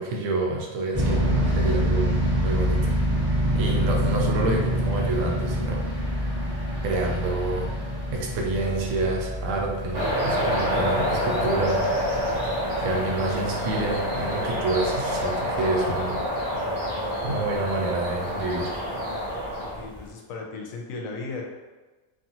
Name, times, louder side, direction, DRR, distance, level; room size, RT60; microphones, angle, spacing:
voice 1, 0.0-3.0 3.5-6.1 6.8-7.7 8.1-11.9 12.8-16.2 17.2-18.8, right 2 dB, 75° right, -1 dB, 0.9 m, -28 dB
sound 1, 0.9-20.1, equal, 10° right, 1.0 m, -28 dB
sound 2, 9.9-19.7, equal, 45° right, 0.6 m, -27 dB
voice 2, 19.5-21.4, left 3 dB, 85° left, 0 dB, 1.0 m, -36 dB
2.6 x 2.4 x 2.8 m, 1.2 s
omnidirectional pair, 1.4 m